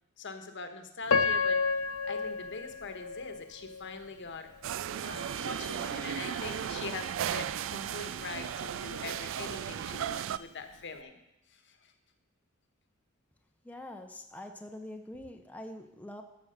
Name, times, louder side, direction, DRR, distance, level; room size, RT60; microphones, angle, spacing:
voice 1, 0.2-1.6 2.0-4.5 5.0-11.2 11.5-11.9, left 4 dB, 60° left, 7 dB, 1.2 m, -43 dB
Piano, 1.1-4.1 4.7-4.8 5.4-5.7, left 4 dB, 80° left, 0.7 m, -30 dB
sound 1, 4.6-10.4, right 9 dB, 65° right, 0.3 m, -36 dB
sound 2, 4.9-10.6, right 3 dB, 25° right, 1.1 m, -49 dB
voice 2, 13.6-16.2, left 1 dB, 5° left, 4 dB, 0.7 m, -44 dB
13.5 x 6.2 x 6.6 m, 0.92 s
head